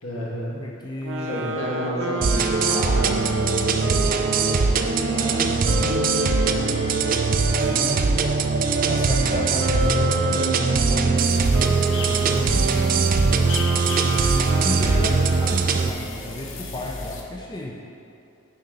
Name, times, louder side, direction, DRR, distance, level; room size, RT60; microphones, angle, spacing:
voice 1, 0.0-0.6 1.2-7.1, equal, 85° left, -5 dB, 1.8 m, -32 dB
voice 2, 0.6-1.6 7.6-8.3 8.9-14.0 14.5-17.8, left 1 dB, 20° left, -1 dB, 0.5 m, -34 dB
sound 1, 1.0-8.0 8.6-15.8, right 2 dB, 60° right, 0.8 m, -29 dB
sound 2, 2.2-15.9, right 4 dB, 40° right, 0.4 m, -21 dB
sound 3, 11.2-17.2, left 3 dB, 60° left, 0.8 m, -35 dB
9.6 x 4.3 x 5.3 m, 2.6 s
head